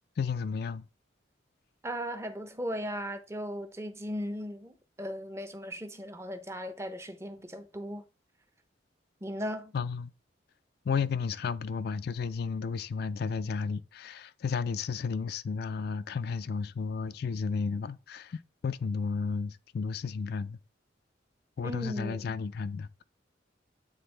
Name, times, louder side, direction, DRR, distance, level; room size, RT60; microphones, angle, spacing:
voice 1, 0.2-0.8 9.7-10.1 10.9-20.6 21.6-23.0, left 5 dB, 55° left, 0.3 m, -33 dB
voice 2, 1.8-8.0 9.2-9.7 21.6-22.3, equal, 15° right, 0.6 m, -37 dB
8.7 x 3.7 x 3.3 m
head